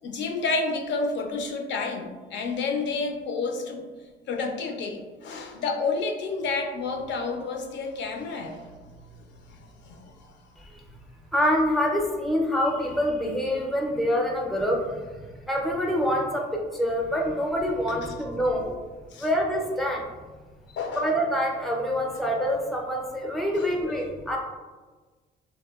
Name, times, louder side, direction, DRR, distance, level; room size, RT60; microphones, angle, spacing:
voice 1, 0.0-3.8 4.3-8.7 9.4-10.3 18.1-18.2 19.1-19.3 20.7-21.1 23.5-24.0, left 4 dB, 65° left, 3 dB, 0.4 m, -30 dB
voice 2, 11.3-18.7 19.2-20.1 21.0-24.4, equal, ahead, 0 dB, 0.4 m, -26 dB
2.7 x 2.2 x 2.2 m, 1.3 s
cardioid pair, 90°, 20 cm